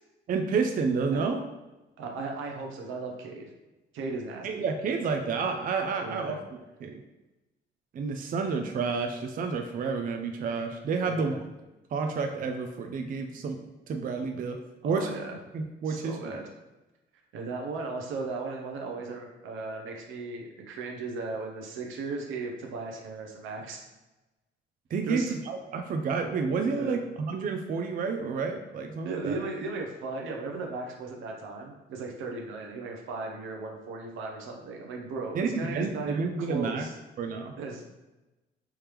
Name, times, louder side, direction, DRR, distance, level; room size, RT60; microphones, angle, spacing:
voice 1, 0.3-1.4 4.4-6.4 6.8-7.0 7.9-11.4 11.9-13.6 13.9-14.6 14.8-15.1 15.5-16.4 24.9-29.4 35.3-36.9 37.2-37.5, right 5 dB, 45° right, 5 dB, 0.4 m, -30 dB
voice 2, 2.0-3.5 3.9-4.6 6.0-6.4 11.0-11.4 14.8-15.4 15.9-16.4 17.3-23.8 25.1-25.3 26.7-27.0 29.0-36.9 37.5-37.8, right 3 dB, 85° right, 1 dB, 0.7 m, -36 dB
3.4 x 3.2 x 3.0 m, 1.0 s
cardioid pair, 90°, 20 cm